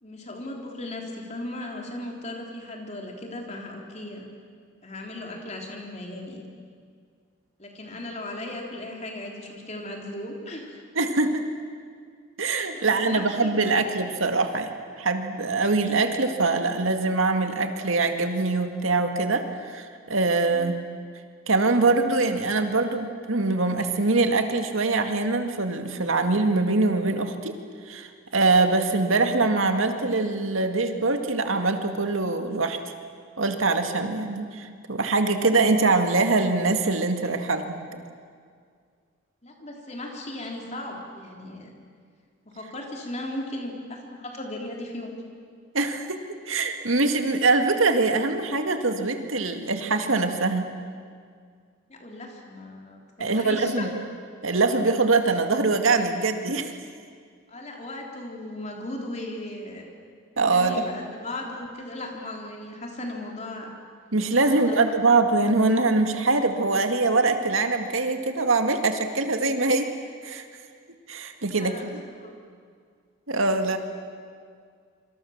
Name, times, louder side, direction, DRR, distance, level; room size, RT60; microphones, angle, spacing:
voice 1, 0.0-4.3 4.8-6.4 7.6-10.8 12.7-13.9 20.5-20.7 39.4-41.7 42.5-45.1 51.9-53.9 57.5-59.9 60.5-63.7 64.3-65.0 71.5-72.3, left 1 dB, 35° left, 1 dB, 3.6 m, -37 dB
voice 2, 11.0-11.4 12.4-14.7 15.0-19.4 19.7-20.8 21.5-27.5 27.9-32.8 33.4-37.8 45.7-46.2 46.5-50.7 53.2-53.9 54.4-56.7 60.4-60.9 64.1-69.9 70.2-70.4 71.1-72.0 73.3-73.8, right 3 dB, 85° right, 6 dB, 2.1 m, -23 dB
26.5 x 25.0 x 7.3 m, 2.1 s
head